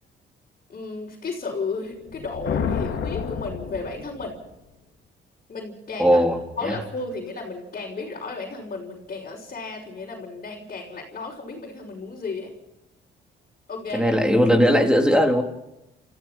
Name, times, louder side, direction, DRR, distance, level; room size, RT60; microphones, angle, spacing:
voice 1, 0.7-4.4 5.5-6.2 6.6-12.5 13.7-14.1, left 3 dB, 45° left, -4 dB, 5.4 m, -33 dB
sound 1, 2.0-4.5, left 6 dB, 70° left, 2.7 m, -29 dB
voice 2, 6.0-6.4 6.6-6.8 13.9-15.4, equal, 5° right, 3 dB, 3.9 m, -18 dB
29.5 x 15.0 x 5.8 m, 0.91 s
cardioid pair, 90°, 20 cm